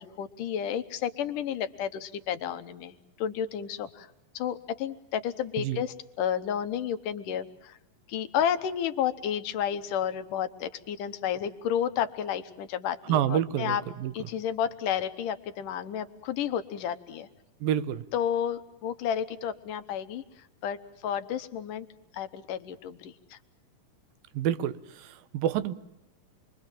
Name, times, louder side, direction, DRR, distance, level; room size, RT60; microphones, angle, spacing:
voice 1, 0.0-4.1 4.3-7.8 8.1-13.8 14.1-17.3 18.1-20.2 20.6-21.9 22.1-23.4, left 9 dB, 75° left, 11 dB, 2.5 m, -31 dB
voice 2, 13.1-14.1 17.6-18.0 24.3-25.7, right 10 dB, 85° right, 14 dB, 2.8 m, -28 dB
27.0 x 23.0 x 7.3 m, 0.84 s
omnidirectional pair, 4.0 m